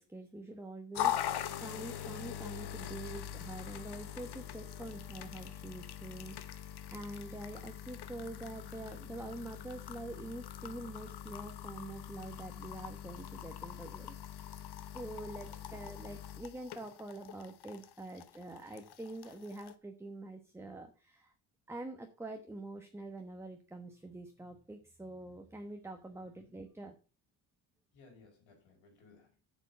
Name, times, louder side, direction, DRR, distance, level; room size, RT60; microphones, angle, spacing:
voice 1, 0.0-14.6 14.9-21.3 21.7-27.0, right 2 dB, 5° right, 4 dB, 1.1 m, -46 dB
sound 1, 0.9-19.7, left 10 dB, 60° left, 1.0 m, -42 dB
voice 2, 15.3-15.8 26.3-26.5 27.9-29.3, left 4 dB, 90° left, 2 dB, 5.3 m, -61 dB
8.5 x 7.2 x 5.6 m, 0.33 s
cardioid pair, 130°, 45 cm